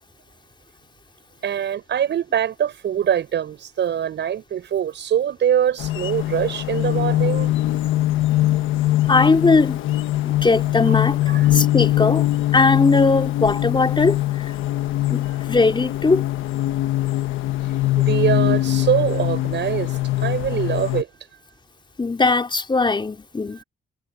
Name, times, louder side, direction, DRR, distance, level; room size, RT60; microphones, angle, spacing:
voice 1, 1.4-7.5 11.3-11.5 18.0-21.1, right 9 dB, 65° right, 7.3 m, -23 dB
sound 1, 5.8-21.0, left 15 dB, 80° left, 1.3 m, -22 dB
voice 2, 9.1-9.8 10.2-12.3 12.5-14.6 15.1-16.2 22.0-23.6, left 3 dB, 25° left, 4.7 m, -19 dB
cardioid pair, 90°, 20 cm